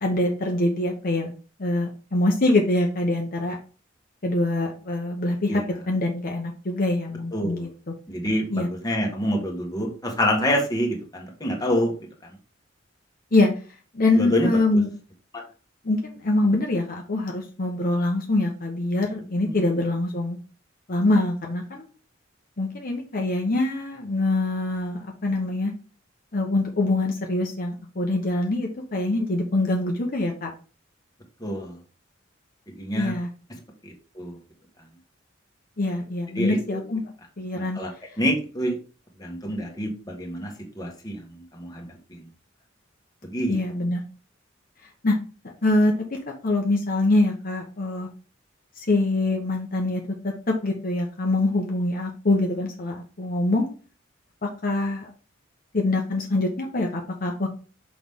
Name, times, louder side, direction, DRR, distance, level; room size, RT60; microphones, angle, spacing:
voice 1, 0.0-1.3 1.6-3.6 4.2-7.9 8.5-8.7 13.3-13.5 13.9-14.9 15.8-20.4 20.9-21.9 22.6-25.7 26.3-30.5 32.9-33.3 35.8-37.8 43.5-44.0 45.0-45.2 45.6-45.9 46.4-48.1 48.8-53.7 54.4-55.1 55.7-57.5, left 2 dB, 50° left, 1 dB, 1.0 m, -24 dB
voice 2, 7.3-7.7 8.1-11.9 14.2-14.5 15.3-15.4 19.5-19.7 31.4-31.7 32.8-33.1 33.8-34.4 36.3-36.8 37.5-37.9 38.2-38.8 39.2-40.5 40.7-41.9 43.2-43.6, equal, 20° left, 1 dB, 1.5 m, -27 dB
6.1 x 5.0 x 3.6 m, 0.36 s
head